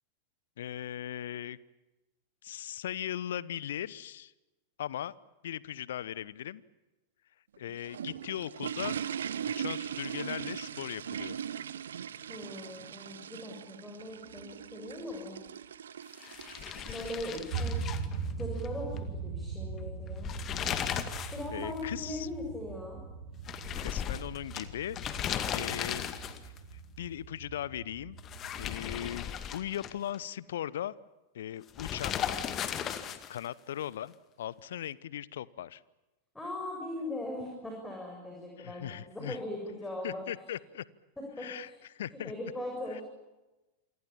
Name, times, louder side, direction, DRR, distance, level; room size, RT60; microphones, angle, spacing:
voice 1, 0.6-1.6 2.4-4.3 4.8-5.1 5.4-6.6 7.6-9.0 9.5-11.4 21.5-22.3 23.8-26.0 27.0-28.2 28.6-30.9 31.3-32.2 33.3-35.8 38.6-39.4 40.0-40.8 41.4-42.3 42.9-43.0, left 11 dB, 60° left, 21 dB, 0.9 m, -38 dB
sound 1, 7.5-17.8, right 8 dB, 65° right, 1.0 m, -40 dB
voice 2, 12.3-15.4 16.7-17.9 18.3-20.3 21.3-23.0 36.3-40.2 41.2-41.8 42.1-43.0, left 1 dB, 5° left, 0 dB, 7.1 m, -40 dB
sound 2, 16.2-18.7 19.0-19.1 20.1-21.5 21.8-21.9 23.5-26.6 28.2-30.2 31.8-33.5, left 9 dB, 30° left, 2.1 m, -36 dB
sound 3, 17.5-29.1, right 5 dB, 50° right, 3.5 m, -40 dB
28.0 x 25.0 x 7.3 m, 1.1 s
figure-of-eight pair, 90°, 0 cm